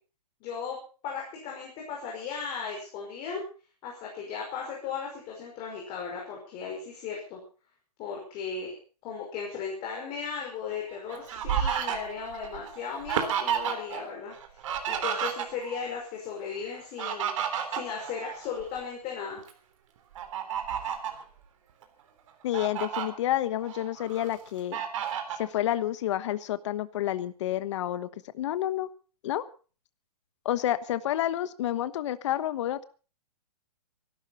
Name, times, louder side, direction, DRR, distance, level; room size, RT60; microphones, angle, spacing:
voice 1, 0.4-0.8 1.0-3.4 3.8-7.4 8.0-8.7 9.0-17.3 17.7-19.4, left 6 dB, 30° left, -1 dB, 5.6 m, -36 dB
Fowl, 10.7-14.0 14.3-15.8 16.7-18.8 19.3-19.5 20.1-21.2 21.8-21.9 22.3-23.1 23.6-24.3 24.7-25.4, right 8 dB, 50° right, 3.6 m, -31 dB
voice 2, 22.4-24.8 25.4-28.1 28.3-28.9 29.2-29.4 30.4-32.8, left 12 dB, 50° left, 14 dB, 1.2 m, -29 dB
24.5 x 12.5 x 4.2 m, 0.38 s
hypercardioid pair, 155°, 20 cm